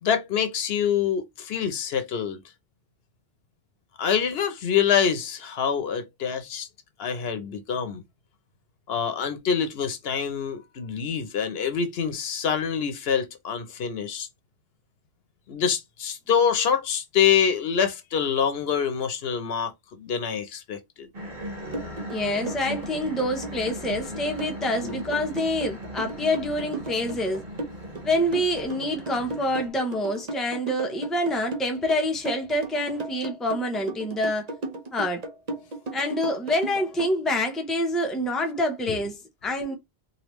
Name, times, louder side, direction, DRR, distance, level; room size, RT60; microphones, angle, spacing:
voice 1, 0.0-2.4 4.0-6.7 7.0-8.0 8.9-14.3 15.5-19.7 20.0-21.1 24.8-25.0 38.9-39.0, left 7 dB, 70° left, 0.9 m, -25 dB
sound 1, 21.1-29.7, equal, 60° right, 1.5 m, -38 dB
sound 2, 21.7-37.1, right 2 dB, 45° right, 0.8 m, -35 dB
voice 2, 22.1-27.4 28.0-34.5 34.9-35.2 35.9-39.7, left 1 dB, ahead, 0.5 m, -26 dB
3.2 x 2.6 x 3.0 m
omnidirectional pair, 1.1 m